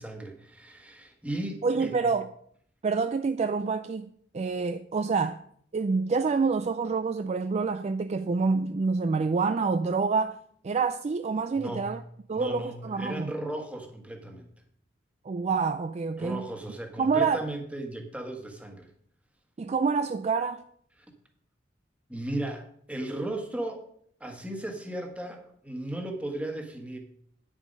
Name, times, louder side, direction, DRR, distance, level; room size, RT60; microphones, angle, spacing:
voice 1, 0.0-2.0 11.5-11.9 12.3-14.5 16.2-18.9 22.1-23.8 24.2-27.0, right 1 dB, 5° right, 1.5 m, -36 dB
voice 2, 1.6-2.3 2.8-5.4 5.7-10.4 10.6-12.0 12.3-13.3 15.3-16.4 17.0-17.4 19.6-20.6, right 4 dB, 35° right, 0.3 m, -27 dB
9.4 x 7.3 x 5.3 m
head